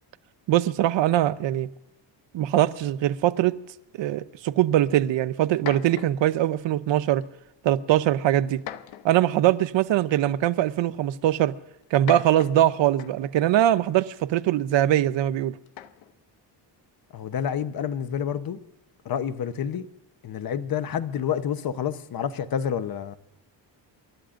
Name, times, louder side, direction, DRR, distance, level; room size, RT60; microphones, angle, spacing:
voice 1, 0.5-1.7 2.3-3.5 3.9-7.2 7.6-8.6 9.0-11.5 11.9-15.5, right 12 dB, 80° right, 0.8 m, -22 dB
sound 1, 4.9-5.0 5.5-6.3 7.2-7.5 8.6-9.3 10.4-10.5 11.8-13.4 15.7-16.2, left 11 dB, 90° left, 0.9 m, -40 dB
voice 2, 17.1-18.6 19.0-19.9 20.2-23.2, left 8 dB, 50° left, 0.9 m, -28 dB
28.5 x 13.0 x 2.6 m
cardioid pair, 125°, 44 cm